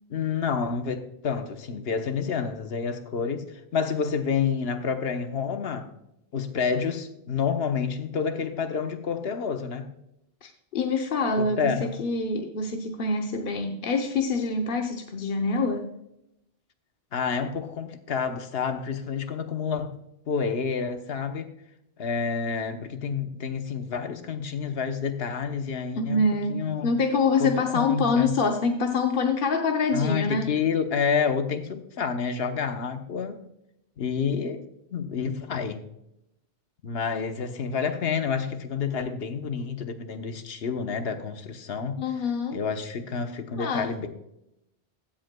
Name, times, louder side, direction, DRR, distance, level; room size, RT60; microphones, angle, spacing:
voice 1, 0.1-5.9 6.3-9.9 11.4-11.9 17.1-19.9 20.3-21.5 22.0-26.2 26.5-26.9 27.4-28.4 29.9-33.4 34.0-34.6 34.9-35.8 36.8-42.0 42.5-44.1, left 6 dB, 75° left, 7 dB, 1.2 m, -29 dB
voice 2, 10.4-15.9 26.0-30.5 42.0-42.6 43.5-43.9, left 3 dB, 60° left, 3 dB, 0.9 m, -26 dB
15.5 x 7.8 x 2.2 m, 0.82 s
omnidirectional pair, 1.0 m